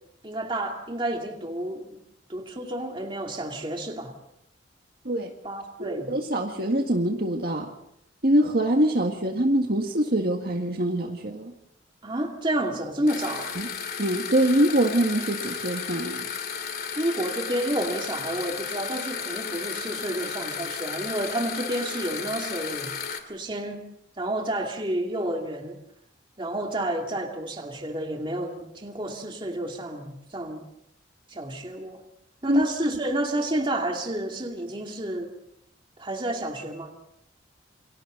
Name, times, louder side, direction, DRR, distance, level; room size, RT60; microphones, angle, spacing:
voice 1, 0.2-2.0 2.3-4.2 5.4-6.1 12.0-13.6 17.0-22.9 23.3-23.8 24.2-25.8 26.4-30.6 31.3-32.0 32.4-35.3 36.0-36.9, right 1 dB, 25° right, 1 dB, 2.5 m, -30 dB
voice 2, 5.8-7.7 8.2-11.5 13.6-13.7 14.0-16.3 32.5-32.6, right 1 dB, 55° right, 2 dB, 1.8 m, -24 dB
sound 1, 13.1-23.2, left 6 dB, 50° left, 2.7 m, -34 dB
28.5 x 24.5 x 4.0 m, 0.76 s
head